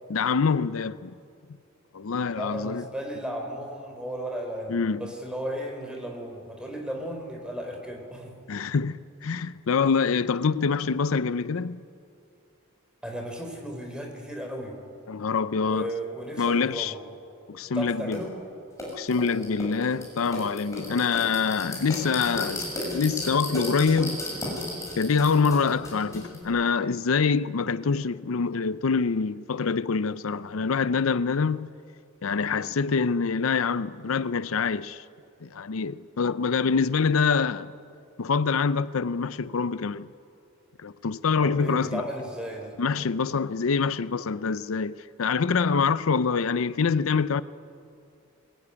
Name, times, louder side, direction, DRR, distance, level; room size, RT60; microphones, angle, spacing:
voice 1, 0.1-1.1 1.9-2.8 4.7-5.1 8.5-11.8 15.1-15.9 16.4-16.9 17.5-18.2 18.9-22.6 22.9-24.2 25.0-31.7 32.2-35.0 35.4-37.7 38.2-40.1 40.8-42.0 42.8-47.4, left 5 dB, 80° left, 0.5 m, -25 dB
voice 2, 2.3-8.3 13.0-14.8 15.6-17.1 17.7-18.4 41.4-42.8, equal, 5° right, 3.7 m, -35 dB
sound 1, 18.1-18.2 18.8-26.4, left 1 dB, 15° left, 7.4 m, -34 dB
21.5 x 21.5 x 9.8 m
head